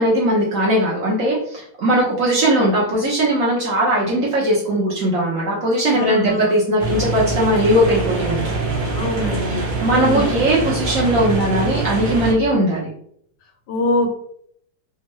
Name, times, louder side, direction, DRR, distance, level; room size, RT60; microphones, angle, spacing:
voice 1, 0.0-8.4 9.5-12.9, right 1 dB, 60° right, -5 dB, 0.9 m, -19 dB
voice 2, 5.9-6.5 8.9-9.6 9.9-10.2 13.7-14.1, left 1 dB, 75° left, 2 dB, 1.4 m, -23 dB
sound 1, 6.8-12.3, right 3 dB, 85° right, 0.4 m, -24 dB
3.5 x 2.1 x 3.0 m, 0.66 s
omnidirectional pair, 2.1 m